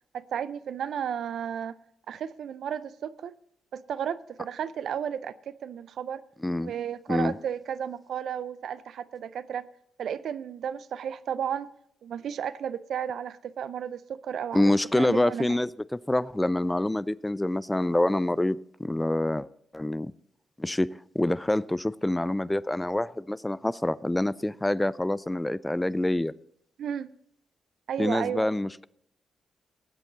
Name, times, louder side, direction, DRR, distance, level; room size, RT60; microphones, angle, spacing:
voice 1, 0.1-1.7 2.1-3.3 3.7-6.2 6.6-9.7 10.0-11.7 12.0-15.6 26.8-27.2 27.9-28.5, right 8 dB, 70° right, 0.5 m, -33 dB
voice 2, 14.5-19.5 19.7-20.1 20.6-26.3 28.0-28.9, left 1 dB, 15° left, 0.4 m, -26 dB
18.5 x 8.2 x 3.9 m
supercardioid pair, 45°, 0 cm